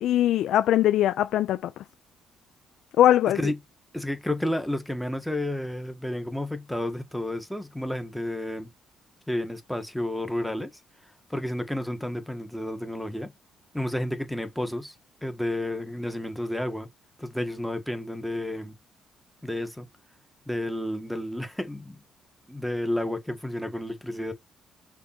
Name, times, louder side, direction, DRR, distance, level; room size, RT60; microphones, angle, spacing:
voice 1, 0.0-1.7 3.0-3.5, left 12 dB, 80° left, 0.5 m, -21 dB
voice 2, 3.9-8.7 9.3-10.8 11.3-13.3 13.7-14.9 15.2-16.9 17.2-18.7 19.4-19.9 20.5-22.0 22.5-24.3, left 1 dB, 5° left, 1.8 m, -31 dB
6.4 x 3.8 x 4.4 m
cardioid pair, 90°, 0 cm